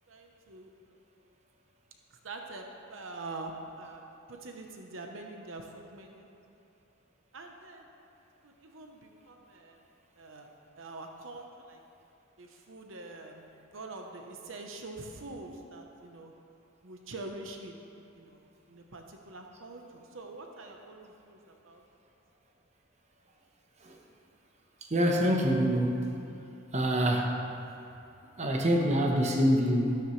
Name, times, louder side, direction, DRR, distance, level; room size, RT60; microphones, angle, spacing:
voice 1, 0.1-0.7 2.1-6.3 7.3-7.8 8.4-9.8 10.1-10.5 10.8-11.8 12.4-16.3 16.8-17.8 18.1-18.4 18.7-21.8, right 2 dB, 75° right, 2 dB, 1.0 m, -45 dB
voice 2, 24.9-26.1 26.7-27.3 28.4-30.0, equal, 35° right, 1 dB, 1.1 m, -25 dB
13.0 x 12.5 x 3.2 m, 2.7 s
head